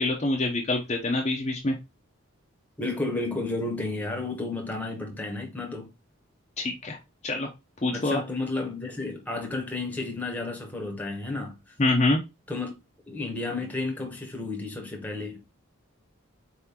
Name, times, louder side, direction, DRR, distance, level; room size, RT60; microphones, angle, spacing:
voice 1, 0.0-1.8 6.6-7.0 7.2-7.5 7.8-8.2 11.8-12.2, left 2 dB, 30° left, 0.6 m, -25 dB
voice 2, 2.8-5.9 7.9-11.6 12.5-12.7 13.1-15.4, left 2 dB, 10° left, 0.9 m, -32 dB
4.2 x 3.6 x 2.8 m
head